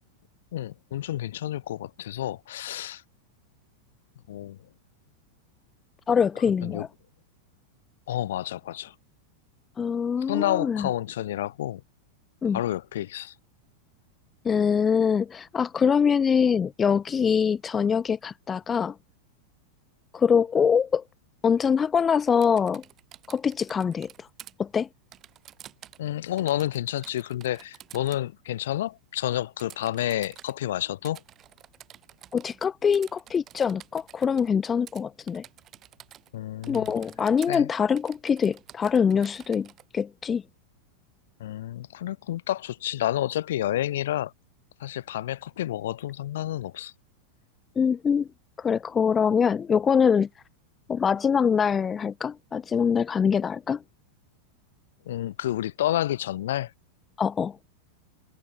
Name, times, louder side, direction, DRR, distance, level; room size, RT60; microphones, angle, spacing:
voice 1, 0.5-3.0 4.3-4.6 6.6-6.8 8.1-8.9 10.3-11.8 12.5-13.3 26.0-31.2 36.3-36.9 37.5-37.7 41.4-44.3 44.8-46.9 55.0-56.7, left 13 dB, 60° left, 3.4 m, -30 dB
voice 2, 6.1-6.9 9.8-10.9 12.4-12.6 14.4-19.0 20.1-21.0 21.4-22.8 23.3-24.3 24.6-24.9 32.3-35.4 36.7-39.7 39.9-40.4 47.8-48.3 48.6-50.3 50.9-53.8 57.2-57.6, left 6 dB, 20° left, 0.4 m, -24 dB
Typing, 22.3-24.5 25.1-26.1 26.4-28.2 29.6-30.5 31.0-32.7 32.9-34.5 34.9-35.0 35.3-36.3 36.6-37.6 38.0-39.8, right 11 dB, 30° right, 6.0 m, -49 dB
figure-of-eight pair, 90°, 0 cm